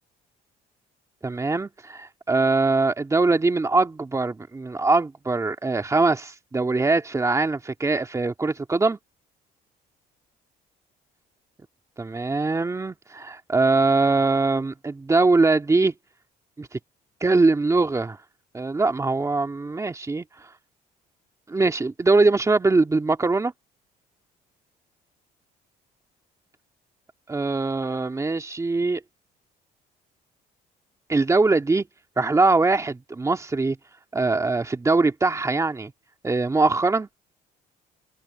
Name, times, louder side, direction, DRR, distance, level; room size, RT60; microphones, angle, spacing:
voice 1, 1.2-9.0 12.0-15.9 16.6-16.8 17.2-18.2 18.5-20.2 21.5-23.5 27.3-29.0 31.1-31.8 32.2-33.8 34.1-35.9 36.2-37.1, right 3 dB, 20° right, 2.3 m, -22 dB
open air
cardioid pair, 110°, 17 cm